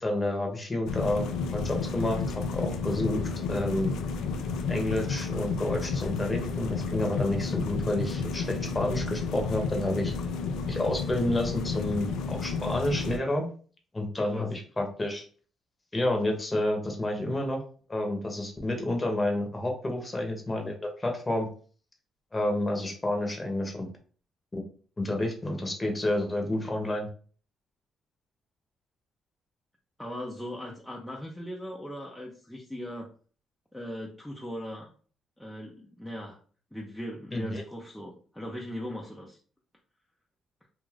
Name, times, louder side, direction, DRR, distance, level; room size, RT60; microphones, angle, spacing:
voice 1, 0.0-3.2 3.5-3.9 4.7-10.1 10.7-13.5 13.9-15.2 15.9-17.6 17.9-21.5 22.3-23.9 24.5-24.6 25.0-27.1 37.3-37.6, left 1 dB, 20° left, 3 dB, 0.8 m, -29 dB
sound 1, 0.9-13.2, left 4 dB, 85° left, 0.3 m, -31 dB
voice 2, 14.2-14.5 30.0-33.1 33.7-34.9 35.4-36.4 36.7-39.4, equal, 5° left, -2 dB, 0.5 m, -39 dB
2.5 x 2.4 x 3.2 m, 0.42 s
cardioid pair, 90°, 0 cm